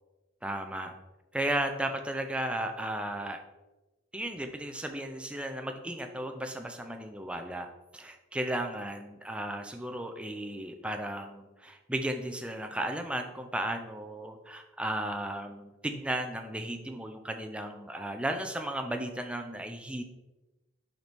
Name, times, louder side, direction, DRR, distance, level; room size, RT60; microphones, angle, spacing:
voice 1, 0.4-1.0 1.3-3.4 4.1-20.0, right 1 dB, 5° right, 5 dB, 0.4 m, -35 dB
6.5 x 4.5 x 3.5 m, 1.1 s
head